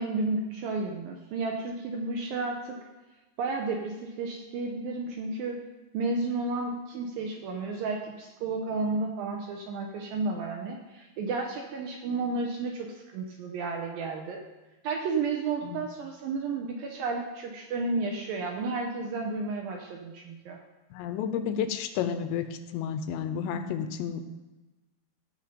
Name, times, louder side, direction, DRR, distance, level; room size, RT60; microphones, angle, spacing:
voice 1, 0.0-2.8 3.4-5.6 5.9-14.4 14.8-20.6, right 3 dB, 75° right, 2 dB, 2.1 m, -32 dB
voice 2, 20.9-24.2, left 8 dB, 85° left, 9 dB, 3.0 m, -31 dB
16.0 x 5.5 x 5.2 m, 1.1 s
omnidirectional pair, 5.0 m